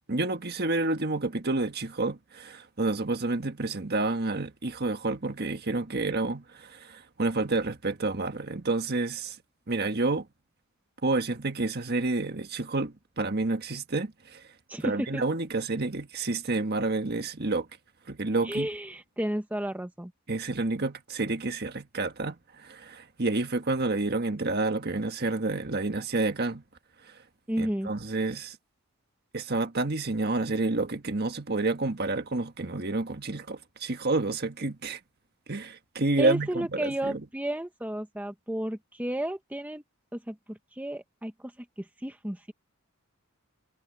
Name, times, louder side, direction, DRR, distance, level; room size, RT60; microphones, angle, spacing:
voice 1, 0.1-9.4 9.7-10.3 11.0-14.4 14.8-17.7 18.1-18.7 20.3-26.6 27.1-27.2 27.6-28.6 29.3-35.0 35.5-37.2, right 2 dB, 45° right, 1.5 m, -29 dB
voice 2, 14.7-15.2 18.4-20.1 27.5-27.9 36.2-39.8 40.1-42.5, right 1 dB, 5° right, 0.9 m, -33 dB
head